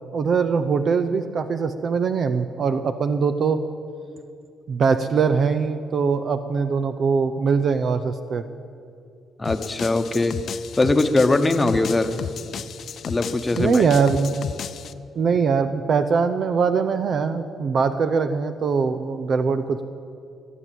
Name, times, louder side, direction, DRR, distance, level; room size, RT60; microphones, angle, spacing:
voice 1, 0.1-3.6 4.7-8.4 13.6-14.4 15.2-19.8, right 5 dB, 55° right, 9 dB, 0.6 m, -22 dB
sound 1, 9.4-14.9, left 7 dB, 60° left, 0.5 m, -34 dB
voice 2, 9.4-10.4 10.7-12.2 13.1-13.9, left 2 dB, 20° left, 8 dB, 1.0 m, -21 dB
22.0 x 8.3 x 7.6 m, 2.4 s
cardioid pair, 90°, 0 cm